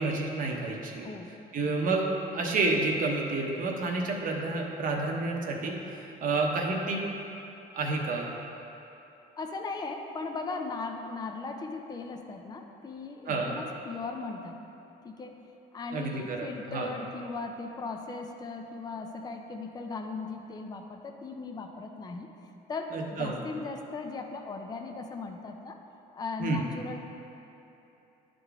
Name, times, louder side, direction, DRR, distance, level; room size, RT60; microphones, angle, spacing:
voice 1, 0.0-1.1 1.5-2.1 2.3-7.0 7.7-8.3 13.3-13.5 15.9-16.9 22.9-23.4 26.4-26.6, right 3 dB, 55° right, 0 dB, 1.0 m, -30 dB
voice 2, 9.4-14.6 15.0-15.4 15.7-22.3 22.7-25.8 26.1-27.0, left 3 dB, 25° left, 4 dB, 0.5 m, -38 dB
10.5 x 3.8 x 3.5 m, 3.0 s
cardioid pair, 110°, 17 cm